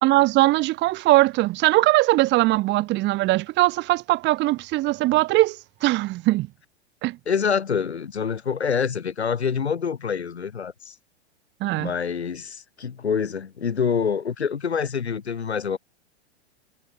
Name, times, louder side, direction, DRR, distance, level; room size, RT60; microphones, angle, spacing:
voice 1, 0.0-6.5 7.0-7.2 11.6-11.9, right 19 dB, 35° right, 2.1 m, -20 dB
voice 2, 7.3-10.9 11.8-15.8, left 6 dB, 75° left, 7.6 m, -26 dB
figure-of-eight pair, 100°, 33 cm